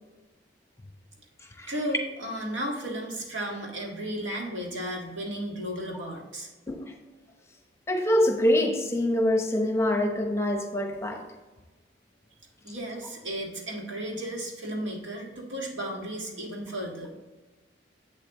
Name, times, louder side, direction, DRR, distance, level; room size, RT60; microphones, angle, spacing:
voice 1, 1.7-6.5 12.6-17.1, right 1 dB, 85° right, 0 dB, 1.7 m, -34 dB
voice 2, 7.9-11.2, left 1 dB, 15° left, 4 dB, 0.8 m, -25 dB
8.0 x 7.2 x 3.0 m, 1.2 s
head